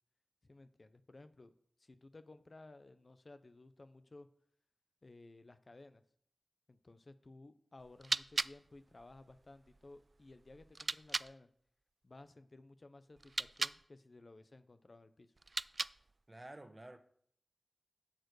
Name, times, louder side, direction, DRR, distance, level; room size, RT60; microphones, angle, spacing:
voice 1, 0.4-1.5 1.8-4.3 5.0-6.0 6.7-11.5 12.0-15.3, left 2 dB, 55° left, 0.8 m, -57 dB
sound 1, 7.8-11.3 13.2-13.8 15.4-16.2, right 3 dB, 55° right, 0.3 m, -40 dB
voice 2, 16.3-17.0, right 1 dB, 30° right, 1.3 m, -51 dB
11.5 x 6.7 x 4.8 m
cardioid pair, 45°, 0 cm